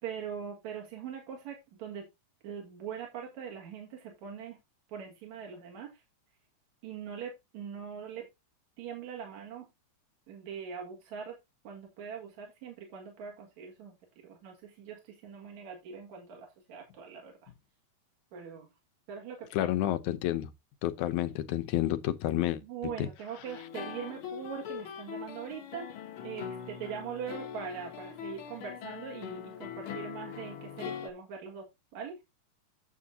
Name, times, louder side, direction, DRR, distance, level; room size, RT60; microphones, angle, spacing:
voice 1, 0.0-2.1 2.4-4.6 4.9-6.0 6.8-8.3 8.8-9.6 10.3-11.4 11.6-14.0 14.2-17.5 18.3-18.7 19.1-19.7 22.6-25.9 26.2-32.2, right 7 dB, 70° right, 3.3 m, -42 dB
voice 2, 19.5-20.5 20.8-22.6 23.0-23.1, left 13 dB, 80° left, 2.2 m, -29 dB
sound 1, 23.4-31.1, left 8 dB, 60° left, 1.4 m, -42 dB
9.5 x 7.3 x 2.7 m
omnidirectional pair, 3.4 m